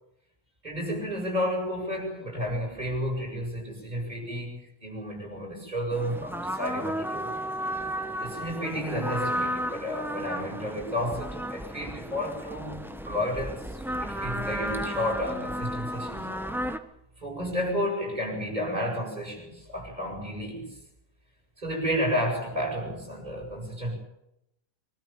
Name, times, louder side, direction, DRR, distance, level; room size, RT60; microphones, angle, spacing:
voice 1, 0.6-7.3 8.2-16.4 17.2-20.7 21.6-23.9, equal, 25° right, -1 dB, 8.0 m, -31 dB
sound 1, 5.9-16.8, equal, ahead, 1.1 m, -33 dB
25.0 x 13.5 x 9.0 m, 0.83 s
omnidirectional pair, 1.6 m